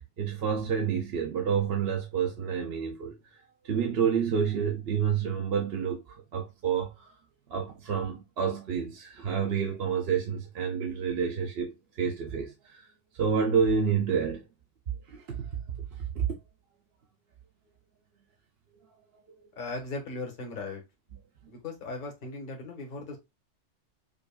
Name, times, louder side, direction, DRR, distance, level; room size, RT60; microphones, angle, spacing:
voice 1, 0.0-3.4 3.6-7.1 7.5-12.9 13.2-14.4 15.1-15.5 16.2-16.3, right 7 dB, 60° right, 0.8 m, -29 dB
voice 2, 19.6-20.8 21.5-23.2, left 3 dB, 45° left, 1.2 m, -37 dB
5.1 x 2.5 x 2.2 m
omnidirectional pair, 1.3 m